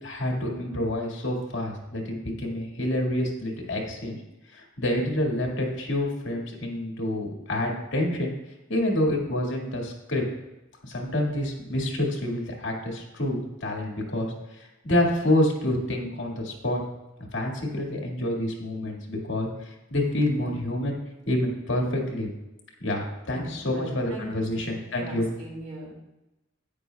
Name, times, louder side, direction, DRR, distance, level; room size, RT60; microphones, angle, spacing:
voice 1, 0.0-4.2 4.5-8.3 8.7-10.2 10.8-16.8 17.3-21.0 21.3-22.3 22.8-25.3, left 1 dB, 60° left, 0 dB, 1.8 m, -28 dB
voice 2, 23.3-24.3 24.5-26.0, right 1 dB, 50° right, -2 dB, 2.3 m, -41 dB
11.0 x 9.2 x 2.3 m, 0.97 s
head